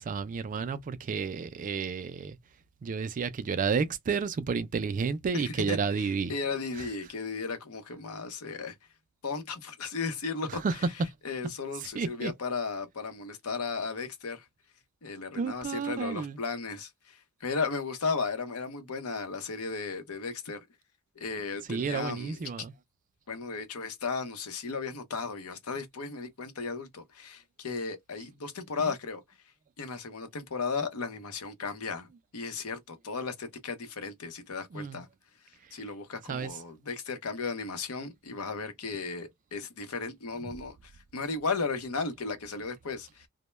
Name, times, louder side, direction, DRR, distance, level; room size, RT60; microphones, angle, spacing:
voice 1, 0.0-2.4 2.8-6.3 10.6-10.7 11.9-12.3 15.3-16.4 21.7-22.7 34.7-35.0 36.3-36.5, right 5 dB, 35° right, 0.3 m, -31 dB
voice 2, 5.3-8.7 9.2-10.6 11.2-14.4 15.0-20.6 21.2-22.4 23.3-29.2 29.8-32.1 32.3-35.1 35.7-40.8 41.1-43.3, left 4 dB, 70° left, 0.7 m, -35 dB
2.1 x 2.1 x 3.0 m
head